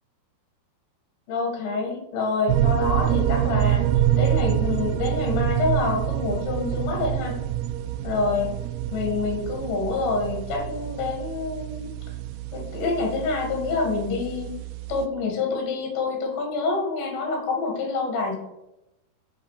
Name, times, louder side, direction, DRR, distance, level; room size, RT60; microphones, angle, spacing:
voice 1, 1.3-3.9 4.2-7.4 8.0-8.5 8.9-11.9 12.5-14.5 14.9-18.4, left 4 dB, 60° left, 2 dB, 3.8 m, -27 dB
sound 1, 2.5-15.1, right 12 dB, 85° right, 2.6 m, -26 dB
7.7 x 7.2 x 6.6 m, 0.90 s
omnidirectional pair, 4.7 m